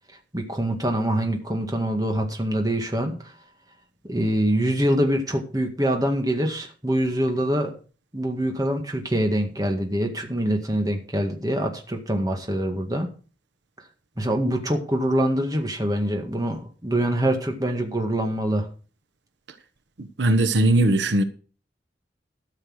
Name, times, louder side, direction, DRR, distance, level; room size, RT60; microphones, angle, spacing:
voice 1, 0.3-3.3 4.0-7.7 8.1-13.1 14.2-18.7, right 1 dB, 20° right, 2.0 m, -24 dB
voice 2, 20.0-21.2, right 1 dB, 85° right, 1.1 m, -20 dB
13.5 x 6.5 x 6.3 m
head